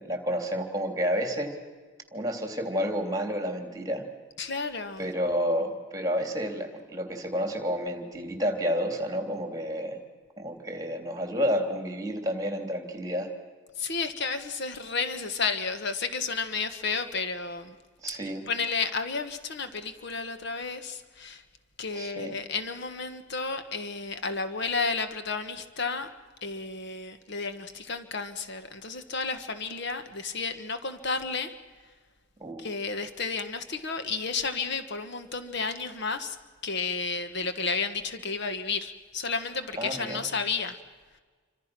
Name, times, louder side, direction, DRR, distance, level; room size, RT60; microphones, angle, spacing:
voice 1, 0.0-1.5 2.1-4.0 5.0-10.0 10.4-13.3 18.0-18.4 21.9-22.4 32.4-32.6 39.8-40.3, equal, 15° right, 5 dB, 3.1 m, -30 dB
voice 2, 4.4-5.1 13.8-17.7 18.5-21.4 21.8-26.1 26.4-31.5 32.6-36.4 36.6-40.7, left 4 dB, 55° left, 9 dB, 1.4 m, -32 dB
28.0 x 25.0 x 6.1 m, 1.4 s
head